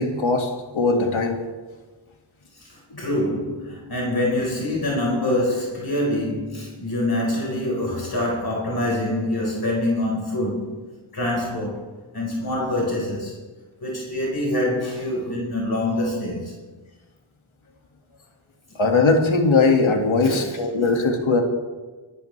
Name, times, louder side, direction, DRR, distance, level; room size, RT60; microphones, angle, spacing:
voice 1, 0.0-1.4 18.8-21.4, left 3 dB, 85° left, 2.1 m, -20 dB
voice 2, 2.5-10.7 11.1-11.8 12.1-13.4 13.8-16.6 20.2-20.5, left 1 dB, 50° left, 4.3 m, -25 dB
23.5 x 14.0 x 3.3 m
wide cardioid pair, 60°, 47 cm